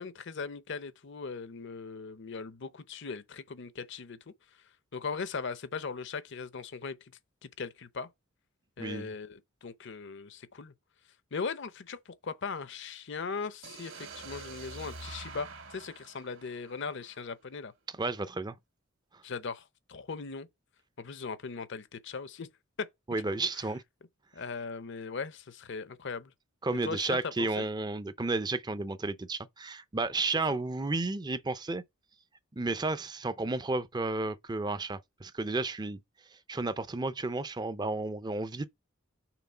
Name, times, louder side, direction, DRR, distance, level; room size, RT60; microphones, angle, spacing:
voice 1, 0.0-4.2 4.9-7.1 7.4-8.1 8.8-10.7 11.3-17.7 19.2-20.5 21.0-22.5 22.8-22.9 23.4-23.5 24.3-26.3 26.9-27.6, left 5 dB, 55° left, 0.7 m, -39 dB
voice 2, 8.8-9.1 17.9-18.6 23.1-23.8 26.6-31.8 32.5-36.0 36.5-38.7, right 3 dB, 20° right, 0.5 m, -32 dB
sound 1, 13.6-17.5, right 3 dB, 70° right, 2.0 m, -46 dB
5.9 x 3.7 x 5.5 m
head